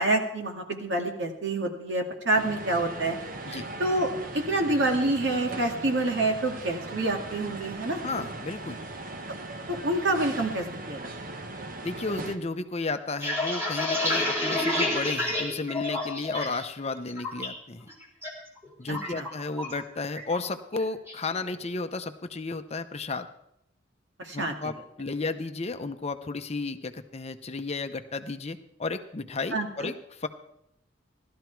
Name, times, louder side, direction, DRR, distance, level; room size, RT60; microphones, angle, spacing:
voice 1, 0.0-3.2 3.5-4.1 4.3-8.0 9.7-11.0 18.9-19.3 24.2-24.7 29.5-29.9, right 2 dB, 70° right, 3 dB, 2.1 m, -27 dB
sound 1, 2.3-12.4, right 2 dB, 50° right, 1.1 m, -39 dB
voice 2, 8.0-8.8 11.8-17.9 18.8-23.3 24.3-24.7 25.0-30.3, left 3 dB, 35° left, 8 dB, 0.7 m, -33 dB
sound 2, 13.0-16.6 17.0-17.5 17.9-18.3 18.6-19.8 20.1-20.4 20.7-21.2, left 1 dB, 15° right, 3.3 m, -29 dB
17.0 x 12.5 x 4.6 m, 0.77 s
head